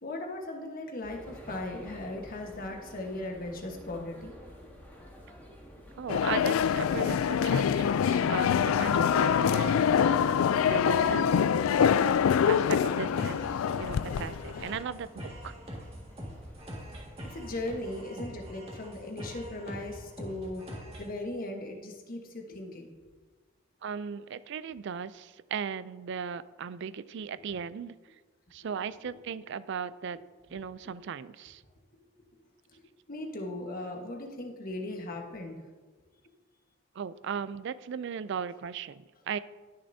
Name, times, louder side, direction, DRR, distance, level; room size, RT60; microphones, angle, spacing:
voice 1, 0.0-4.3 17.2-22.9 30.8-30.9 32.7-32.8 33.1-35.6, left 1 dB, 45° left, 2 dB, 1.3 m, -38 dB
sound 1, 1.0-17.8, equal, 10° left, 1.8 m, -51 dB
voice 2, 6.0-9.8 10.6-11.4 12.5-13.5 13.8-15.5 23.8-28.0 28.5-30.2 30.5-31.6 36.9-39.4, right 7 dB, 60° right, 16 dB, 0.4 m, -37 dB
sound 2, 6.1-14.7, left 7 dB, 90° left, 0.3 m, -25 dB
sound 3, 13.2-21.2, equal, 30° right, 1.9 m, -44 dB
18.5 x 6.7 x 2.7 m, 1.3 s
head